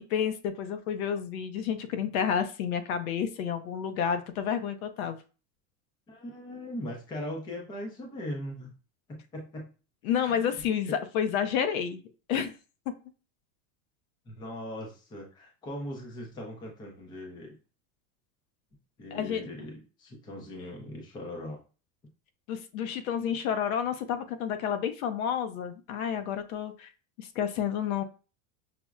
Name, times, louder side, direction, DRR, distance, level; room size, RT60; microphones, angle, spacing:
voice 1, 0.0-5.2 10.0-12.0 12.3-12.6 19.1-19.4 22.5-26.9 27.2-28.0, left 8 dB, 80° left, 9 dB, 0.7 m, -30 dB
voice 2, 6.1-8.7 9.1-9.7 10.1-11.0 14.3-17.6 19.0-21.6, left 1 dB, 10° left, 0 dB, 0.4 m, -40 dB
5.8 x 2.0 x 2.3 m, 0.34 s
supercardioid pair, 160°, 42 cm